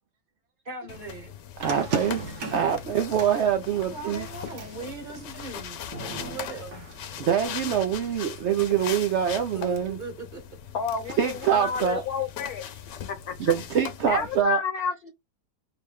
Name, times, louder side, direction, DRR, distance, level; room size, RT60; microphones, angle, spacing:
voice 1, 0.6-1.3 3.8-6.9 9.5-10.4, right 3 dB, 35° right, 0.9 m, -39 dB
sound 1, 0.9-14.4, left 9 dB, 85° left, 1.3 m, -40 dB
sound 2, 1.6-9.7, right 3 dB, 70° right, 1.6 m, -41 dB
voice 2, 1.6-4.3 7.2-10.0 11.2-12.0 13.4-14.6, right 8 dB, 90° right, 0.6 m, -25 dB
voice 3, 10.7-12.6 13.1-13.5 14.1-15.1, left 7 dB, 65° left, 1.3 m, -30 dB
3.8 x 2.2 x 3.4 m
omnidirectional pair, 1.8 m